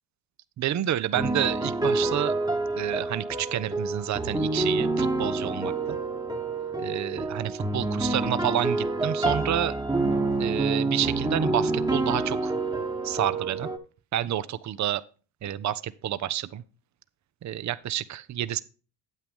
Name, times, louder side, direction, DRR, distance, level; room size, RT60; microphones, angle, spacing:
voice 1, 0.6-2.3 2.8-6.0 6.8-9.8 10.4-12.6 13.0-13.7 14.1-15.0 15.4-16.6 17.4-18.6, right 11 dB, 40° right, 0.7 m, -29 dB
sound 1, 1.1-13.8, right 2 dB, 10° right, 1.2 m, -27 dB
9.2 x 8.2 x 3.5 m
supercardioid pair, 70°, 43 cm